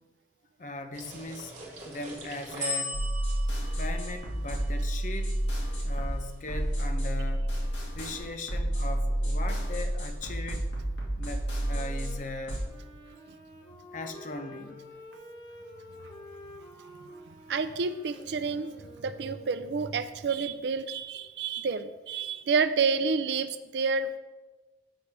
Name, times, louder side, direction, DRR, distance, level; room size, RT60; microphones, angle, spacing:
voice 1, 0.6-1.5 1.8-3.1 3.8-5.4 5.8-7.6 7.9-10.7 11.2-12.6 13.9-14.9 15.9-16.0, left 2 dB, 45° left, 7 dB, 0.6 m, -39 dB
sound 1, 0.9-5.5, left 1 dB, 40° right, 1.5 m, -39 dB
sound 2, 2.9-12.6, right 1 dB, 75° left, 1.9 m, -30 dB
Wind instrument woodwind instrument, 11.6-19.9, left 1 dB, 25° left, 1.1 m, -49 dB
voice 2, 17.5-18.7 19.0-24.2, right 5 dB, 65° right, 11 dB, 0.4 m, -29 dB
8.0 x 3.3 x 5.8 m, 1.2 s
head